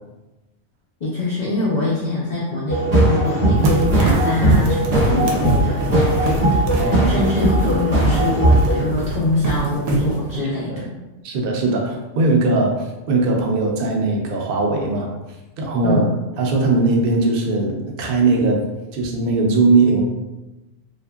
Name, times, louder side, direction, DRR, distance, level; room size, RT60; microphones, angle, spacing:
voice 1, 1.0-6.4 6.7-10.9 15.8-16.1, left 2 dB, 80° left, -6 dB, 0.3 m, -24 dB
sound 1, 2.7-8.8, right 1 dB, 35° right, 0.8 m, -18 dB
sound 2, 3.6-10.4, right 1 dB, 85° right, 1.0 m, -24 dB
voice 2, 6.8-7.3 10.7-10.8 11.2-15.1 15.6-16.0 16.4-18.6 18.9-20.0, right 3 dB, 65° right, 0 dB, 0.5 m, -19 dB
2.6 x 2.4 x 2.3 m, 1.0 s
omnidirectional pair, 1.4 m